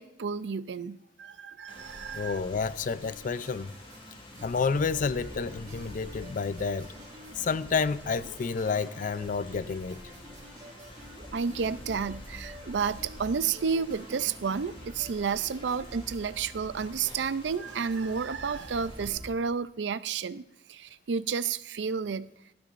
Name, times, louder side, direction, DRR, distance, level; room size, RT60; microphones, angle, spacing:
voice 1, 0.0-2.4 11.3-20.4 20.7-22.3, right 6 dB, 70° right, 0.5 m, -31 dB
Rain, 1.7-19.1, left 1 dB, 30° left, 1.8 m, -50 dB
sound 1, 1.7-19.3, right 1 dB, 20° right, 4.4 m, -49 dB
voice 2, 2.1-3.7 4.4-6.9 7.4-10.0, left 5 dB, 45° left, 0.4 m, -30 dB
sound 2, 4.4-16.1, right 1 dB, 40° right, 1.6 m, -51 dB
19.0 x 13.0 x 2.5 m
head